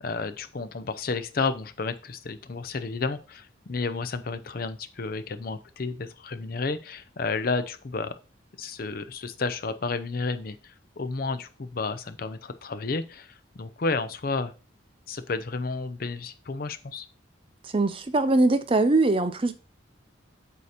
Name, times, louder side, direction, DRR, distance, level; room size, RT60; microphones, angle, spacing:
voice 1, 0.0-8.2 8.6-14.5 15.1-17.1, left 4 dB, 50° left, 0.5 m, -31 dB
voice 2, 17.7-19.5, right 2 dB, 25° right, 0.5 m, -22 dB
8.2 x 2.8 x 4.9 m
head